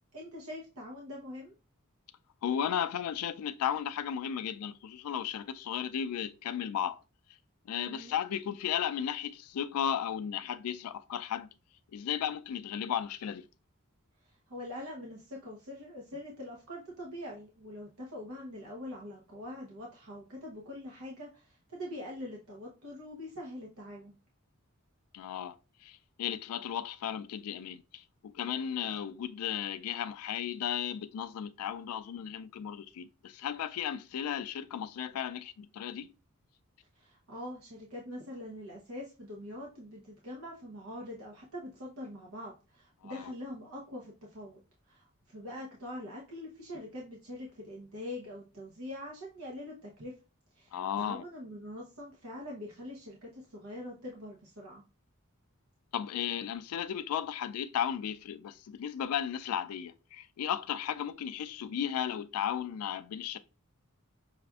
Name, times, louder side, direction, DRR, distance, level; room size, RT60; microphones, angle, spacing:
voice 1, 0.1-1.5 7.7-8.1 14.2-24.1 36.9-50.2 50.5-54.8, left 1 dB, 75° right, 0.8 m, -44 dB
voice 2, 2.4-7.0 7.7-11.5 11.9-13.4 25.1-25.6 25.8-36.1 43.0-43.2 50.7-51.2 55.9-63.4, left 9 dB, 90° left, 0.3 m, -35 dB
5.8 x 2.4 x 2.3 m
head